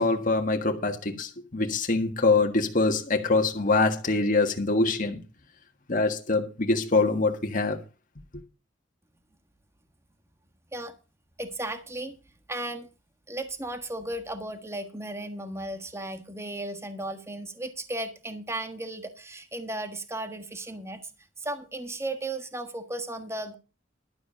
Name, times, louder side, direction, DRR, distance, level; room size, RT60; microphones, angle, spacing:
voice 1, 0.0-5.2 5.9-7.8, left 3 dB, 45° left, 1.7 m, -24 dB
voice 2, 11.4-12.1 12.5-12.9 13.3-21.1 21.4-23.6, right 1 dB, 15° right, 1.4 m, -35 dB
12.5 x 8.1 x 5.1 m
head